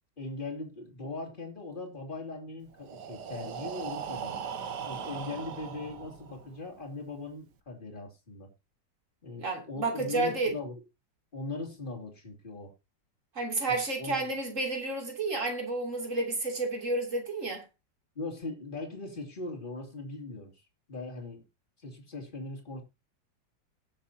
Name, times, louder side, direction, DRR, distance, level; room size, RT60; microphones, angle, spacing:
voice 1, 0.2-4.4 4.8-8.5 9.2-10.8 11.3-12.7 13.7-14.3 18.1-20.6 20.9-21.4 21.8-22.8, left 3 dB, 25° left, 3.0 m, -40 dB
Breathing, 2.7-6.6, right 7 dB, 65° right, 1.6 m, -39 dB
voice 2, 9.4-10.5 13.3-17.6, right 2 dB, 40° right, 3.3 m, -31 dB
19.5 x 7.3 x 2.8 m
omnidirectional pair, 2.0 m